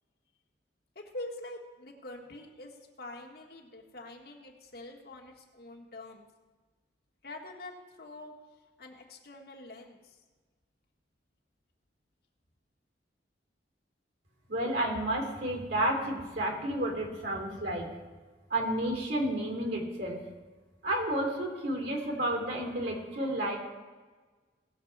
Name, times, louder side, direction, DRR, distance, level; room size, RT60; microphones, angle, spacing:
voice 1, 0.9-6.3 7.2-8.3 8.8-10.2, left 2 dB, 55° left, 0 dB, 1.5 m, -45 dB
voice 2, 14.5-17.9 18.5-20.2 20.8-23.6, right 1 dB, 75° right, 1 dB, 3.2 m, -31 dB
18.0 x 6.7 x 4.7 m, 1.3 s
head